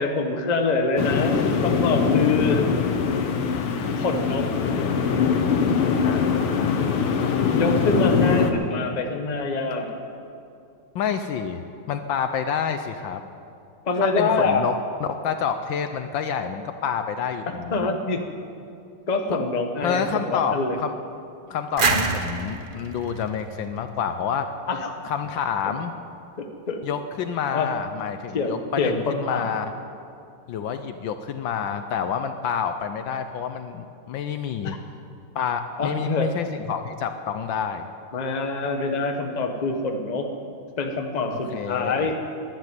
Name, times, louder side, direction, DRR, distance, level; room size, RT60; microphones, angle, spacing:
voice 1, 0.0-2.7 4.0-4.5 7.5-9.9 13.8-14.6 17.7-18.2 19.1-20.8 24.7-24.9 26.4-26.8 27.5-27.7 28.3-29.5 34.6-34.8 35.8-36.3 38.1-40.3 40.8-42.1, left 3 dB, 25° left, 4 dB, 0.9 m, -25 dB
sound 1, 1.0-8.5, left 6 dB, 90° left, 2.0 m, -22 dB
voice 2, 6.0-6.8 10.9-11.6 11.9-13.2 14.0-14.7 15.0-17.9 19.8-20.9 21.5-24.5 25.0-25.9 26.8-29.7 30.5-34.8 35.3-37.9 41.3-42.1, left 7 dB, 70° left, 8 dB, 1.3 m, -28 dB
sound 2, 21.8-24.5, right 4 dB, 45° right, 0.6 m, -27 dB
12.0 x 11.5 x 9.6 m, 2.5 s
omnidirectional pair, 2.3 m